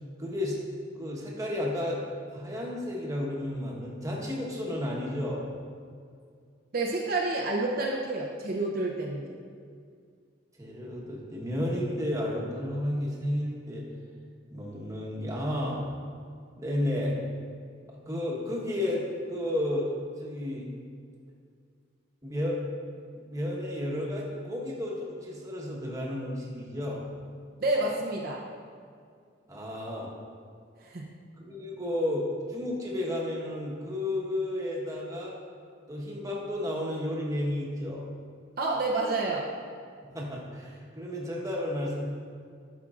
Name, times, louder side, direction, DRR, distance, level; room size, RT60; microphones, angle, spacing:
voice 1, 0.2-0.6 1.0-2.0 2.3-5.5 10.6-13.8 14.5-15.9 16.5-17.2 17.9-20.7 22.2-22.6 23.3-27.1 29.5-30.1 31.4-35.3 35.9-38.0 40.1-42.0, left 1 dB, 15° right, -4 dB, 1.2 m, -32 dB
voice 2, 6.7-9.3 27.6-28.4 30.8-31.0 38.6-39.5, right 2 dB, 50° right, -2 dB, 0.7 m, -29 dB
12.0 x 6.2 x 2.5 m, 2.2 s
head